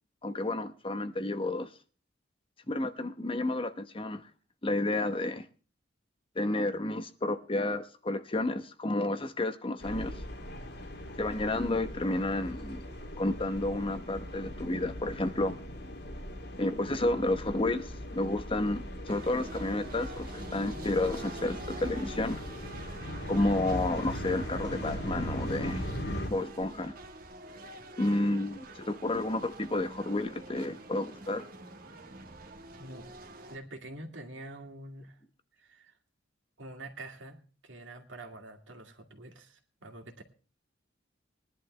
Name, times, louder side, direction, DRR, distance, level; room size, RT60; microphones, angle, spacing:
voice 1, 0.2-1.7 2.7-4.3 4.6-5.5 6.3-10.2 11.2-12.9 13.2-15.6 16.6-22.4 23.3-25.8 26.3-26.9 28.0-31.4, left 2 dB, 30° left, 0.9 m, -31 dB
sound 1, 9.8-26.3, equal, 60° left, 2.7 m, -39 dB
sound 2, 19.1-33.6, right 2 dB, 50° right, 1.6 m, -47 dB
voice 2, 33.5-35.2 35.6-36.0 36.6-37.4 37.6-40.2, right 2 dB, 80° right, 2.4 m, -46 dB
20.5 x 11.0 x 3.3 m
head